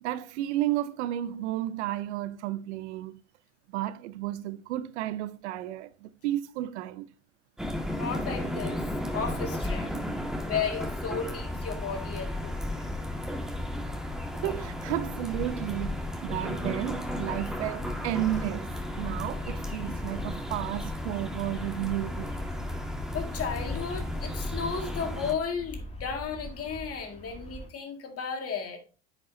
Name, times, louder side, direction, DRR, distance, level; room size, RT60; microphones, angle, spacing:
voice 1, 0.0-3.2 3.7-7.1 14.3-22.4, right 14 dB, 80° right, 0.6 m, -32 dB
sound 1, 7.6-25.3, left 1 dB, ahead, 1.8 m, -34 dB
voice 2, 7.9-8.8 9.1-10.1 10.4-12.8 17.8-17.9 23.1-28.8, left 6 dB, 45° left, 2.1 m, -34 dB
Bird vocalization bird call bird song, 18.7-27.7, left 1 dB, 20° left, 2.3 m, -43 dB
9.3 x 5.4 x 2.7 m
hypercardioid pair, 75°, 34 cm